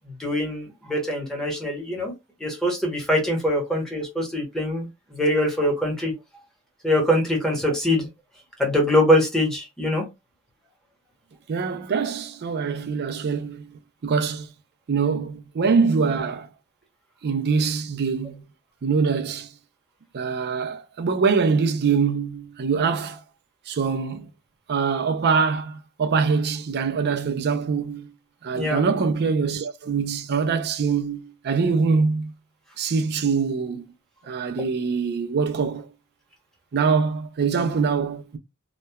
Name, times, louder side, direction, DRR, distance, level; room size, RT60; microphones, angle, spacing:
voice 1, 0.2-2.1 2.4-6.1 6.8-8.1 8.6-10.0 28.5-28.8, left 1 dB, ahead, 0.9 m, -23 dB
voice 2, 11.5-14.5 14.9-16.5 17.2-18.4 18.8-19.5 20.1-23.2 23.7-24.3 24.7-28.1 28.4-32.3 32.8-33.8 34.3-35.9 36.7-38.4, right 5 dB, 50° right, 0.4 m, -24 dB
2.9 x 2.2 x 2.2 m
head